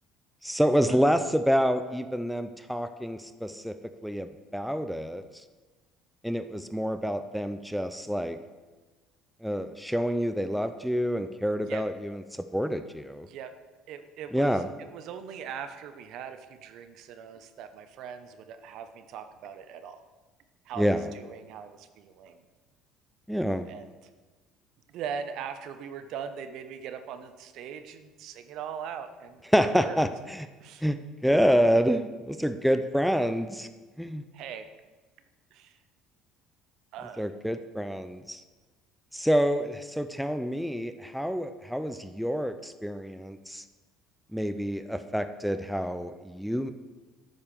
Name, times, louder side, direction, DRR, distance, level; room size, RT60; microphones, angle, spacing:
voice 1, 0.4-3.8 4.0-5.2 6.2-8.4 9.4-13.3 14.3-14.6 20.8-21.1 23.3-23.7 29.5-30.5 30.8-31.0 31.2-33.7 34.0-34.2 37.2-38.4 39.1-43.6 44.3-46.7, equal, ahead, 9 dB, 0.4 m, -27 dB
voice 2, 13.2-13.6 13.9-20.0 20.6-22.4 23.7-24.1 24.9-30.0 30.6-30.8 34.3-34.7 35.5-35.8 36.9-37.3, right 7 dB, 60° right, 9 dB, 0.8 m, -40 dB
9.0 x 5.5 x 6.7 m, 1.3 s
cardioid pair, 135°, 0 cm